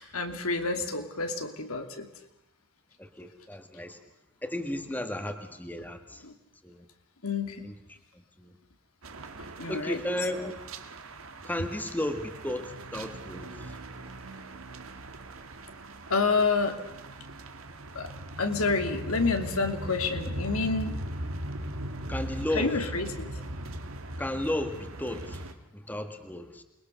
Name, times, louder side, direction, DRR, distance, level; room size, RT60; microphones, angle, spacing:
voice 1, 0.0-2.1 6.2-6.3 7.2-7.7 9.6-10.0 16.1-16.8 17.9-18.1 18.4-21.0 22.5-23.3, left 4 dB, 90° left, 6 dB, 2.8 m, -28 dB
voice 2, 3.0-4.0 4.4-6.3 6.6-6.9 7.6-8.6 9.7-10.5 11.4-13.8 22.1-22.8 23.4-23.5 24.2-26.6, left 1 dB, 10° left, 7 dB, 1.7 m, -34 dB
sound 1, 9.0-25.5, right 1 dB, 75° right, 2.0 m, -39 dB
28.5 x 21.5 x 6.6 m, 0.87 s
head